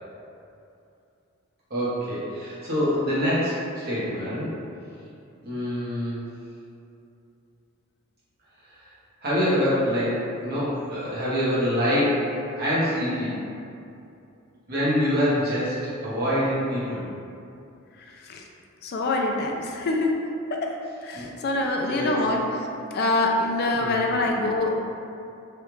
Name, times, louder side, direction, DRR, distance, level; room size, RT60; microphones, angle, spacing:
voice 1, 1.7-4.5 5.4-6.2 9.2-12.3 12.6-13.4 14.7-17.0 21.1-21.3 21.8-22.4 23.7-24.1, equal, 45° right, -10 dB, 1.0 m, -25 dB
voice 2, 18.8-20.1 20.5-20.7 21.0-22.7 22.9-24.7, left 2 dB, 45° left, 1 dB, 0.3 m, -25 dB
3.2 x 2.4 x 3.0 m, 2.6 s
head